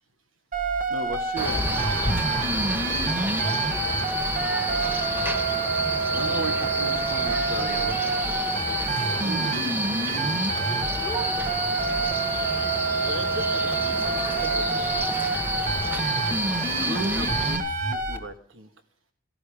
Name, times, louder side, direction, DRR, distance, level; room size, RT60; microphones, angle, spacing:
sound 1, 0.5-18.2, right 3 dB, 40° right, 1.9 m, -27 dB
voice 1, 0.9-1.8 6.1-8.0 9.2-10.4 14.4-14.5, right 2 dB, 75° right, 6 dB, 1.7 m, -35 dB
Male speech man speaking, 1.4-17.6, right 1 dB, 10° right, 1.2 m, -29 dB
voice 2, 13.1-15.0 16.7-18.7, right 1 dB, 60° right, 7 dB, 2.2 m, -38 dB
18.0 x 15.5 x 5.1 m, 0.43 s
head